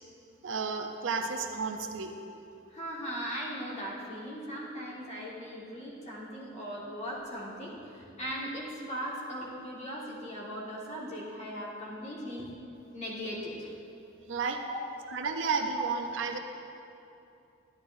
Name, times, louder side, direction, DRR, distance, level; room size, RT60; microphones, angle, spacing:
voice 1, 0.4-2.1 14.3-14.6 15.1-16.4, right 4 dB, 60° right, 5 dB, 0.5 m, -32 dB
voice 2, 2.7-12.5 12.9-13.7 14.6-14.8 15.8-15.9, equal, 30° left, -5 dB, 1.5 m, -38 dB
10.5 x 9.9 x 2.6 m, 2.7 s
head